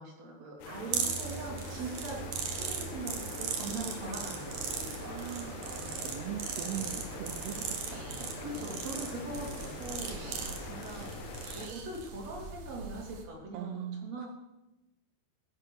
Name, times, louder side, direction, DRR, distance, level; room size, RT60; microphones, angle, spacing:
voice 1, 0.0-5.1 8.2-9.5 9.8-11.1 11.5-14.3, right 2 dB, 40° right, -2 dB, 4.5 m, -42 dB
sound 1, 0.6-11.7, left 4 dB, 75° left, 3.3 m, -45 dB
voice 2, 0.7-1.1 5.0-8.3 13.5-14.3, right 11 dB, 80° right, 9 dB, 2.7 m, -41 dB
sound 2, 0.9-13.2, right 6 dB, 60° right, 3.2 m, -39 dB
sound 3, 1.6-10.9, right 1 dB, 15° right, 3.1 m, -46 dB
15.5 x 11.0 x 6.6 m, 0.97 s
omnidirectional pair, 4.9 m